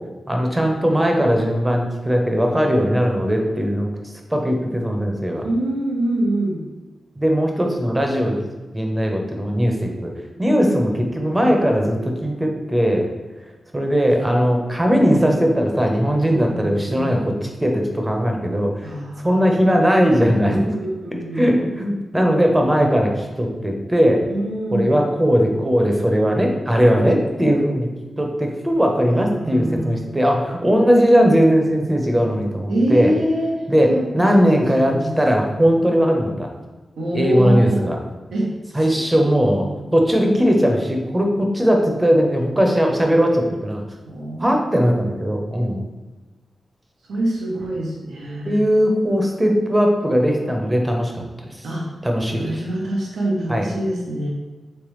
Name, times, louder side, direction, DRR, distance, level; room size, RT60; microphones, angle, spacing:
voice 1, 0.3-3.9 4.3-5.5 7.2-8.4 8.7-10.1 10.4-13.1 13.7-18.9 19.2-20.7 21.3-24.2 24.7-27.9 28.2-33.1 33.7-36.5 37.1-38.0 38.7-39.6 39.9-43.8 44.4-45.8 48.4-51.6 52.0-52.6 53.5-53.6, equal, 15° right, 2 dB, 0.8 m, -19 dB
voice 2, 5.4-6.6 16.3-17.1 18.8-19.4 20.4-21.5 24.3-25.0 29.1-30.0 32.7-33.5 33.9-35.2 37.0-37.9 38.3-39.0 39.2-39.4 39.8-39.9 44.0-44.7 47.1-48.6 51.6-51.9 52.1-54.3, right 1 dB, 90° right, -2 dB, 0.8 m, -25 dB
3.3 x 3.2 x 3.1 m, 1.2 s
cardioid pair, 45°, 0 cm